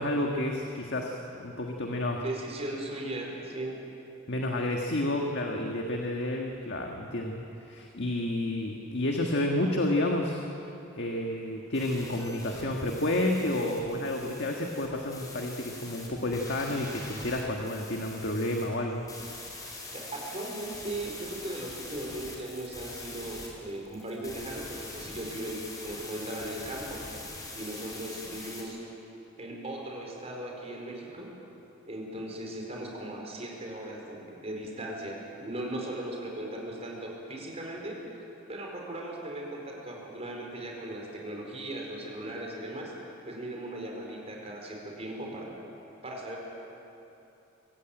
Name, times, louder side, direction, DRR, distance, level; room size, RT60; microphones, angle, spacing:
voice 1, 0.0-2.2 4.3-10.4 11.0-19.0, left 1 dB, 60° left, 1 dB, 1.6 m, -30 dB
voice 2, 2.2-3.8 19.9-27.0 27.5-28.8 29.4-31.3 31.9-42.9 43.2-45.5 46.0-46.4, right 1 dB, 30° right, -1 dB, 4.7 m, -38 dB
sound 1, 11.7-28.6, left 2 dB, 20° left, 4.5 m, -44 dB
24.5 x 15.0 x 9.1 m, 2.9 s
head